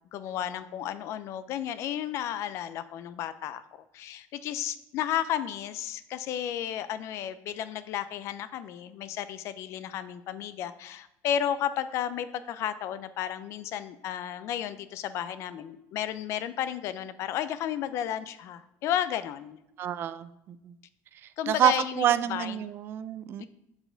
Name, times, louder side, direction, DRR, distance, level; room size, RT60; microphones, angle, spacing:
voice 1, 0.1-3.6 3.9-19.6 21.4-22.6 23.4-23.5, left 10 dB, 50° left, 13 dB, 0.4 m, -33 dB
voice 2, 19.8-20.3 21.5-23.4, right 11 dB, 35° right, 13 dB, 0.3 m, -27 dB
7.0 x 4.1 x 3.9 m, 0.87 s
cardioid pair, 165°, 6 cm